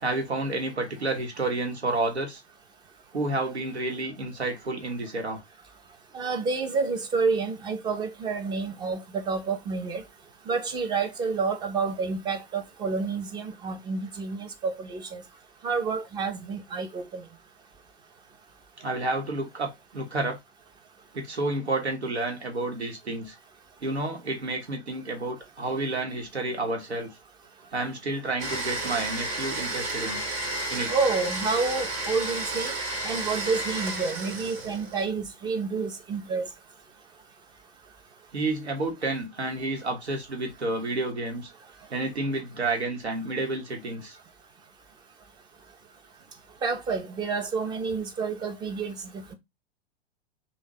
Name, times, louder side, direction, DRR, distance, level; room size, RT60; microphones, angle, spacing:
voice 1, 0.0-2.4 3.1-5.4 18.8-20.4 21.1-23.4 23.8-27.1 27.7-30.2 30.7-30.9 38.3-41.5 41.9-44.2, right 2 dB, 80° right, 1.1 m, -30 dB
voice 2, 6.1-10.0 10.5-15.2 15.6-17.2 30.9-32.7 33.0-36.5 46.6-48.9, right 4 dB, 15° right, 0.6 m, -29 dB
Domestic sounds home sounds, 28.4-35.0, right 2 dB, 60° right, 1.5 m, -32 dB
3.4 x 2.2 x 3.7 m
figure-of-eight pair, 100°, 32 cm